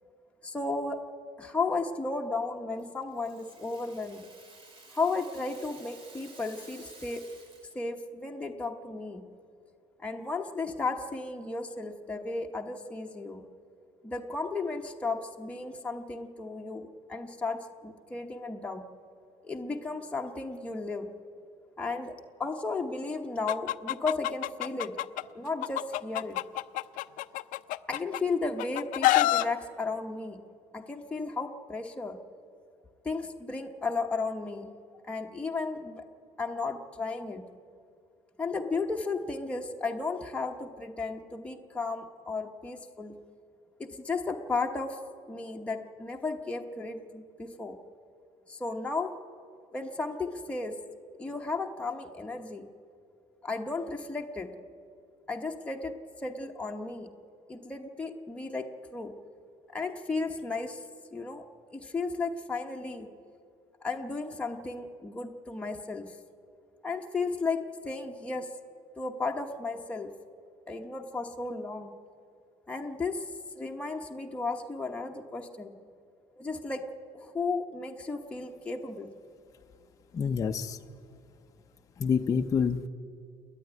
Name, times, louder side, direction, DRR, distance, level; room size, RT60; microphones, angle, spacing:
voice 1, 0.4-1.0 1.4-4.3 4.9-7.2 7.7-9.3 10.0-13.5 14.0-18.9 19.4-21.1 21.8-22.1 22.4-25.0 25.3-26.4 27.9-30.4 30.7-32.2 33.0-34.7 35.0-36.0 36.4-37.5 38.4-43.1 43.8-45.0 45.3-47.8 48.5-49.1 49.7-50.7 51.2-52.7 53.4-54.5 55.3-55.9 56.2-57.1 57.5-58.7 58.9-59.1 59.7-60.8 61.1-61.4 61.7-63.1 63.8-66.2 66.8-68.5 69.0-70.1 70.7-72.0 72.7-73.3 73.5-75.8 76.4-76.8 77.1-79.1, left 3 dB, 10° left, 1 dB, 0.9 m, -34 dB
Rattle (instrument), 2.8-7.9, right 3 dB, 40° right, 3.3 m, -53 dB
Chicken rooster, 23.5-25.2 25.6-28.2 28.6-29.4, left 15 dB, 85° left, 0.5 m, -27 dB
voice 2, 80.1-80.8 82.0-82.9, left 6 dB, 25° left, 4 dB, 0.6 m, -27 dB
29.0 x 10.5 x 9.2 m, 2.4 s
cardioid pair, 170°, 13 cm